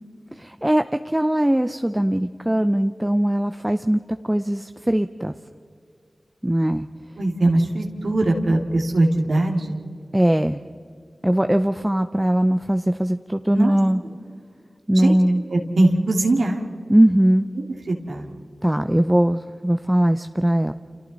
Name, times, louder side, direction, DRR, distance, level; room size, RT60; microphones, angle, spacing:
voice 1, 0.4-5.3 6.4-6.9 10.1-10.6 11.2-14.0 14.9-15.4 16.9-17.5 18.6-20.7, right 1 dB, 15° right, 8 dB, 0.7 m, -20 dB
voice 2, 7.2-9.8 13.5-13.8 15.0-15.2 15.5-16.6 17.9-18.3, right 2 dB, 85° right, 0 dB, 2.4 m, -21 dB
30.0 x 27.5 x 4.1 m, 2.2 s
cardioid pair, 40°, 0 cm